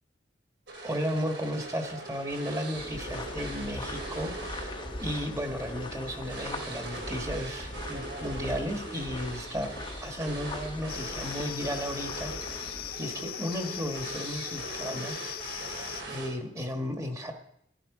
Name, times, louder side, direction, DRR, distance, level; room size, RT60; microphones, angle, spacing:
sound 1, 0.7-16.6, right 2 dB, 85° right, 3.6 m, -41 dB
voice 1, 0.8-4.7 5.0-9.7 10.0-12.6 13.0-15.2 16.1-17.3, equal, 20° right, 5 dB, 1.5 m, -34 dB
sound 2, 2.7-12.9, left 1 dB, 25° left, 1.0 m, -40 dB
sound 3, 10.9-16.0, left 13 dB, 55° left, 0.4 m, -39 dB
14.5 x 11.0 x 4.9 m, 0.71 s
head